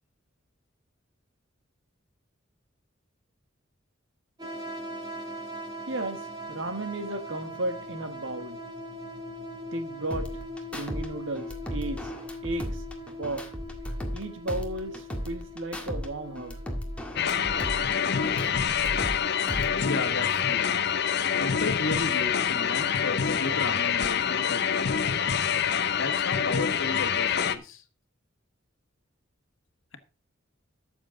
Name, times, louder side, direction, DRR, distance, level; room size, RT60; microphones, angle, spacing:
sound 1, 4.4-17.6, equal, 20° right, 3.2 m, -41 dB
voice 1, 5.9-6.2 6.5-8.6 9.7-10.3 10.7-12.0 12.4-12.8 13.2-13.4 14.1-16.6, right 2 dB, 70° right, 1.6 m, -34 dB
sound 2, 10.1-11.1 11.4-14.2 14.5-16.1 16.4-19.2 19.5-20.1, equal, 5° left, 1.7 m, -36 dB
sound 3, 17.2-27.6, left 7 dB, 55° left, 0.7 m, -26 dB
voice 2, 19.8-20.7 21.4-24.9 25.9-27.8, left 3 dB, 80° left, 1.4 m, -34 dB
13.0 x 7.2 x 3.8 m
head